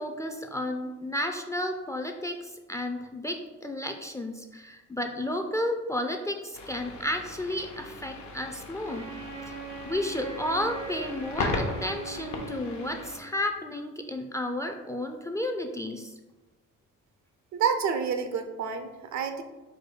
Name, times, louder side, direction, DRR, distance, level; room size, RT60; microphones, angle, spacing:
voice 1, 0.0-9.1 9.4-9.6 9.8-16.1, left 1 dB, 10° left, 5 dB, 0.3 m, -32 dB
sound 1, 6.5-13.2, left 2 dB, 70° left, 0.9 m, -37 dB
Wind instrument woodwind instrument, 8.8-13.2, right 4 dB, 90° right, 1.1 m, -41 dB
voice 2, 17.5-19.4, right 6 dB, 70° right, 8 dB, 0.5 m, -28 dB
4.6 x 2.2 x 4.8 m, 1.1 s
cardioid pair, 90°, 30 cm